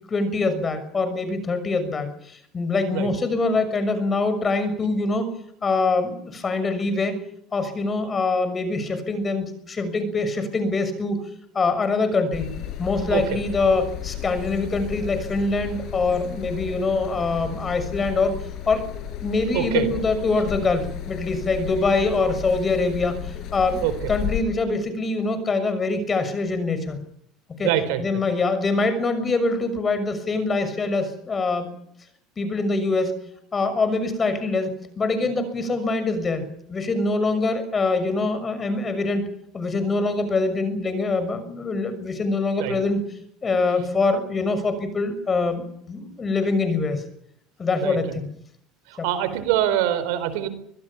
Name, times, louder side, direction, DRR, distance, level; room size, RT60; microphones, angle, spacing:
voice 1, 0.1-5.3 5.6-7.2 7.5-11.2 11.5-12.5 12.8-18.3 18.7-18.8 19.2-27.0 27.6-27.7 28.0-31.7 32.4-33.1 33.5-39.2 39.5-43.0 43.4-47.0 47.6-48.3 49.0-49.1, left 3 dB, 25° left, 11 dB, 6.4 m, -24 dB
sound 1, 12.3-24.4, left 10 dB, 55° left, 4.8 m, -34 dB
voice 2, 19.5-19.9 23.8-24.1 27.6-28.0 42.6-42.8 47.8-48.2 48.9-50.5, right 12 dB, 80° right, 13 dB, 4.1 m, -24 dB
25.0 x 20.5 x 7.3 m, 0.69 s
supercardioid pair, 115°, 0 cm